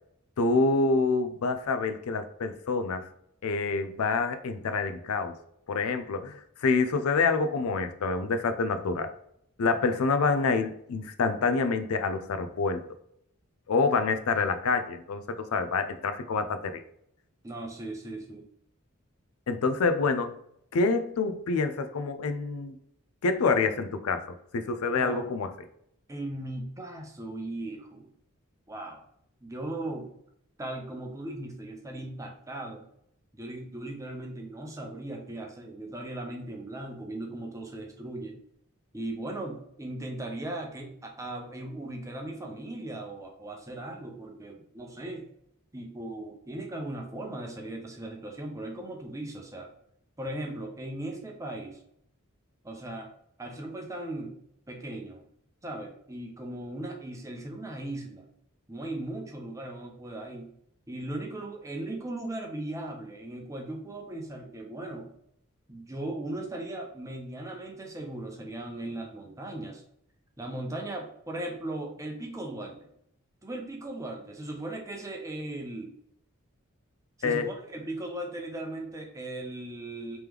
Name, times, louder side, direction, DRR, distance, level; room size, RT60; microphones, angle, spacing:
voice 1, 0.4-3.1 3.4-5.3 5.7-9.1 9.6-12.8 13.7-16.8 19.5-20.3 20.7-22.8 23.2-25.5 77.2-77.5, left 4 dB, 85° left, 9 dB, 0.4 m, -27 dB
voice 2, 17.4-18.4 24.9-25.2 26.1-28.1 28.7-29.0 29.4-30.1 30.6-32.8 33.3-38.4 38.9-45.2 45.7-49.7 50.2-51.8 52.6-53.1 53.4-54.3 54.7-55.2 55.6-58.2 58.7-60.5 60.9-65.1 65.7-69.8 70.4-72.9 73.4-75.9 77.2-80.2, right 1 dB, 15° right, 1 dB, 0.6 m, -38 dB
3.3 x 3.0 x 3.5 m, 0.72 s
head